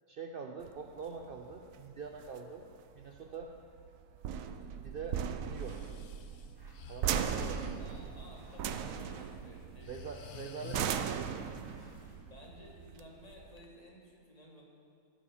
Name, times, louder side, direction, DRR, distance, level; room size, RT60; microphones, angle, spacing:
voice 1, 0.1-2.7 2.9-3.5 4.8-5.2 5.5-5.8 6.9-7.6 9.9-11.7, right 5 dB, 85° right, 3 dB, 0.5 m, -44 dB
sound 1, 0.6-13.6, right 8 dB, 70° right, 0.9 m, -38 dB
Breathing, 5.5-8.0 8.9-9.2 9.6-10.9, left 6 dB, 90° left, 1.3 m, -50 dB
sound 2, 6.5-12.2, equal, 15° right, 1.1 m, -59 dB
voice 2, 7.4-10.2 11.0-11.2 12.1-14.6, left 1 dB, 25° left, -2 dB, 1.5 m, -55 dB
12.5 x 5.6 x 7.2 m, 2.3 s
omnidirectional pair, 1.7 m